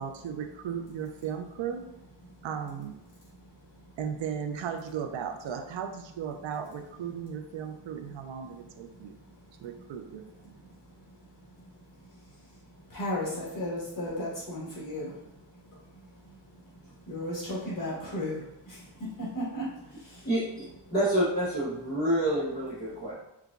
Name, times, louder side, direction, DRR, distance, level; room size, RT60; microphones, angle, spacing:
voice 1, 0.0-1.9 2.4-2.9 4.0-9.2 9.6-10.5, right 7 dB, 85° right, 6 dB, 0.5 m, -36 dB
voice 2, 10.9-11.6 11.9-15.8 16.1-16.8 17.0-20.3, left 1 dB, 45° left, -7 dB, 1.4 m, -37 dB
voice 3, 20.2-20.6 20.9-23.1, right 1 dB, 20° left, -12 dB, 0.9 m, -27 dB
4.6 x 2.3 x 2.4 m, 0.91 s
wide cardioid pair, 180°, 44 cm